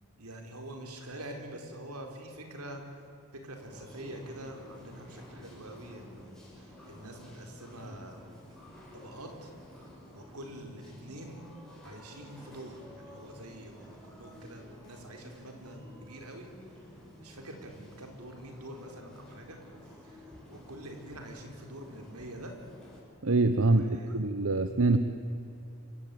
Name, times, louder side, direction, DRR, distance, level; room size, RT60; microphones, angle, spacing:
voice 1, 0.2-3.0 3.3-8.3 8.9-9.5 9.8-11.4 11.8-16.5 17.2-19.6 20.0-22.5 23.6-24.2, right 1 dB, 85° right, 4 dB, 4.3 m, -45 dB
sound 1, 3.5-23.0, left 1 dB, 5° left, 5.5 m, -52 dB
voice 2, 23.2-23.9 24.1-25.0, right 2 dB, 65° right, 9 dB, 1.0 m, -24 dB
27.0 x 16.0 x 9.4 m, 2.7 s
head